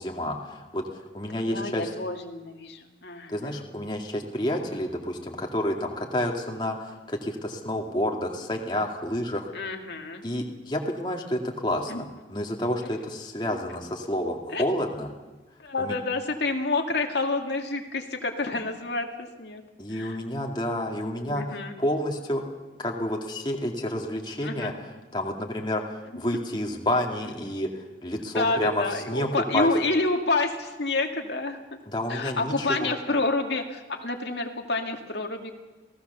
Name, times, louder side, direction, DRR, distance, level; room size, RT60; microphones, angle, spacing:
voice 1, 0.0-1.9 3.3-9.5 10.2-15.1 15.8-15.9 19.8-22.4 22.8-29.3 29.5-29.7 31.9-32.9, left 1 dB, 25° left, 1 dB, 2.3 m, -29 dB
voice 2, 1.3-3.5 9.5-10.2 11.9-12.0 12.8-13.0 14.5-14.6 15.6-19.1 19.4-19.6 19.9-20.2 21.2-21.8 24.4-24.7 26.1-26.2 28.3-31.6 32.1-35.5, left 2 dB, 75° left, 3 dB, 2.2 m, -28 dB
28.0 x 18.0 x 6.9 m, 1.2 s
head